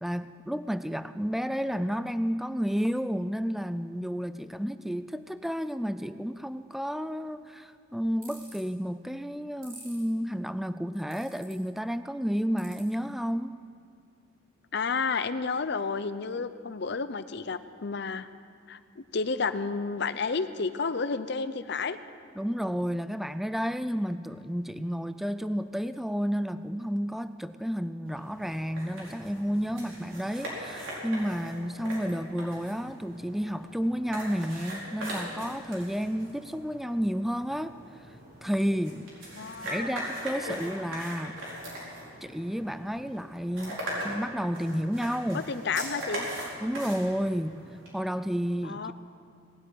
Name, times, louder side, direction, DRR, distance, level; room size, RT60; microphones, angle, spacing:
voice 1, 0.0-13.6 22.4-37.8 38.4-39.1 39.6-41.4 42.2-43.8 44.0-45.5 46.6-47.6 47.9-48.9, equal, ahead, 12 dB, 0.3 m, -31 dB
sound 1, 8.2-8.6 9.6-10.0 11.1-11.5 12.6-12.8, right 4 dB, 45° right, 4.3 m, -47 dB
voice 2, 14.7-18.3 18.7-22.0 39.4-40.0 40.5-40.7 45.3-46.3 48.6-48.9, left 4 dB, 55° left, 12 dB, 0.6 m, -31 dB
sound 2, 28.1-47.9, equal, 75° right, 4.7 m, -40 dB
18.5 x 8.3 x 9.3 m, 2.2 s
head